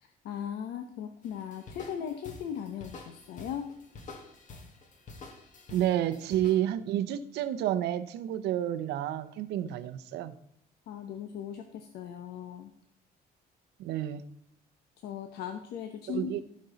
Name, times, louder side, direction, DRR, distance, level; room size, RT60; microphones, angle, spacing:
voice 1, 0.0-3.7 9.6-9.7 10.9-12.7 15.0-16.4, left 8 dB, 75° left, 6 dB, 0.8 m, -38 dB
sound 1, 1.2-6.6, left 3 dB, 50° left, 1.7 m, -48 dB
voice 2, 5.7-10.3 13.8-14.3 16.1-16.4, right 12 dB, 80° right, 12 dB, 0.7 m, -30 dB
15.5 x 5.4 x 4.0 m, 0.71 s
cardioid pair, 110°, 17 cm